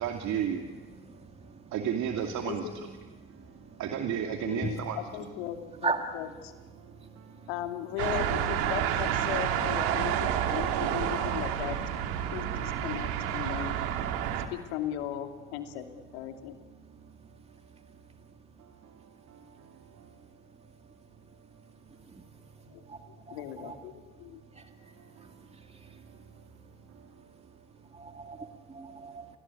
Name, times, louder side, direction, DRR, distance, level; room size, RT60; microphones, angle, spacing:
voice 1, 0.0-2.7 3.3-5.0 6.8-7.5 14.1-14.5 14.9-15.0 16.3-16.4 16.8-18.0 19.1-20.7 22.3-23.0 24.5-28.0 29.0-29.4, right 8 dB, 65° right, 4 dB, 2.6 m, -38 dB
voice 2, 1.0-1.7 2.6-2.9 3.2-3.8 4.6-4.8 5.8-6.0 6.8-7.5 12.2-12.3 14.3-14.4 22.1-22.2 22.9-23.8 24.5-26.1 27.9-29.4, right 4 dB, 20° right, 5 dB, 2.2 m, -39 dB
voice 3, 4.4-6.5 7.5-11.9 12.3-13.8 14.5-16.6 22.7-24.4, left 11 dB, 85° left, 5 dB, 2.6 m, -37 dB
sound 1, 8.0-14.5, right 10 dB, 80° right, 2.5 m, -29 dB
28.0 x 20.5 x 9.9 m, 1.3 s
supercardioid pair, 70°, 31 cm